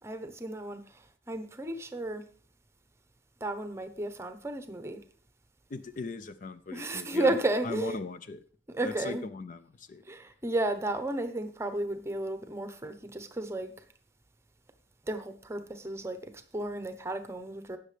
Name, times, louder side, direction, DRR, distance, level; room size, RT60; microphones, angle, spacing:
voice 1, 0.0-2.2 3.4-5.0 6.7-8.0 8.7-9.2 10.0-13.8 15.0-17.8, right 2 dB, 15° right, 0.9 m, -33 dB
voice 2, 5.7-7.3 7.6-8.4 8.8-10.0, left 3 dB, 45° left, 0.5 m, -38 dB
17.5 x 6.5 x 3.3 m
head